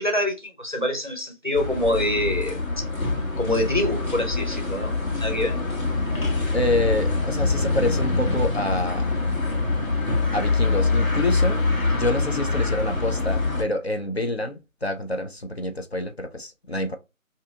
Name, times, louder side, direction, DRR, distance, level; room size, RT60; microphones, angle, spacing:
voice 1, 0.0-2.9 3.4-4.9 5.2-5.6, left 1 dB, 35° right, 0.5 m, -25 dB
sound 1, 1.5-13.6, left 3 dB, 85° left, 1.4 m, -24 dB
voice 2, 6.5-9.2 10.3-11.6 11.9-17.0, left 1 dB, 50° left, 0.4 m, -27 dB
2.7 x 2.4 x 3.2 m
figure-of-eight pair, 160°, 41 cm